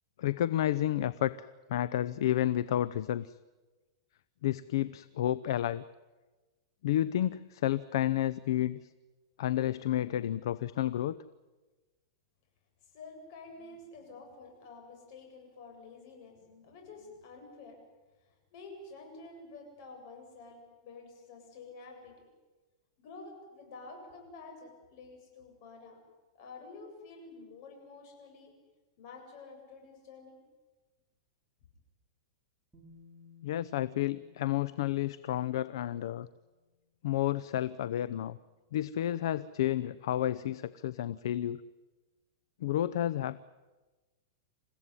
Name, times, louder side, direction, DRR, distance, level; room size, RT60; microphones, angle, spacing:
voice 1, 0.2-3.3 4.4-5.8 6.8-8.8 9.4-11.2 33.4-36.3 37.0-38.4 38.7-41.6 42.6-43.4, left 12 dB, 65° left, 17 dB, 0.7 m, -31 dB
voice 2, 12.8-17.8 18.2-22.2 23.0-26.0 26.3-28.5 29.0-30.4, left 3 dB, 45° left, 3 dB, 7.9 m, -50 dB
Bass guitar, 32.7-36.7 37.8-37.9, left 5 dB, 5° right, 6.0 m, -60 dB
28.5 x 16.0 x 9.9 m, 1.2 s
supercardioid pair, 155°, 3 cm